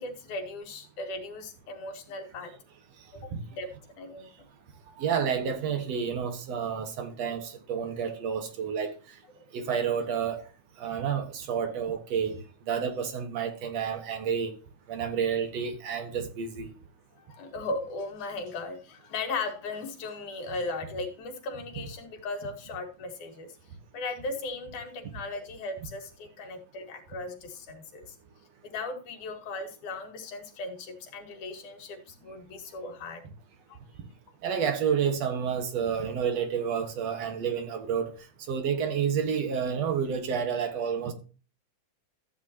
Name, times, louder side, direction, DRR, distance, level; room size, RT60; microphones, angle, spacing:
voice 1, 0.0-2.5 3.1-3.7 4.0-4.3 17.2-23.5 23.9-28.2 28.6-33.2 33.7-33.8, left 3 dB, 85° left, 3.2 m, -37 dB
voice 2, 5.0-8.9 9.5-10.4 10.8-14.5 14.9-16.7 34.4-38.1 38.5-41.1, right 7 dB, 65° right, 2.4 m, -30 dB
13.5 x 9.1 x 2.8 m
omnidirectional pair, 3.4 m